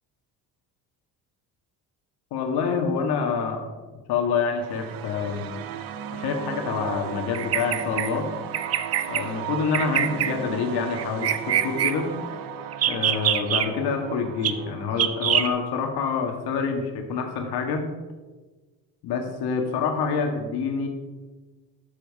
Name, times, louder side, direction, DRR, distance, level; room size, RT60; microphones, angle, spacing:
voice 1, 2.3-3.7 4.1-5.5 6.1-8.3 9.1-12.2 12.9-17.9 19.0-20.9, left 5 dB, 75° left, 4 dB, 2.0 m, -27 dB
sound 1, 4.3-15.3, right 8 dB, 60° right, 0.9 m, -36 dB
Bird vocalization bird call bird song, 7.3-8.1 8.5-9.2 9.7-10.3 11.0-11.9 12.7-13.7 14.4-14.5 15.0-15.5, right 10 dB, 40° right, 0.6 m, -23 dB
13.0 x 7.3 x 4.8 m, 1.3 s
cardioid pair, 160°, 39 cm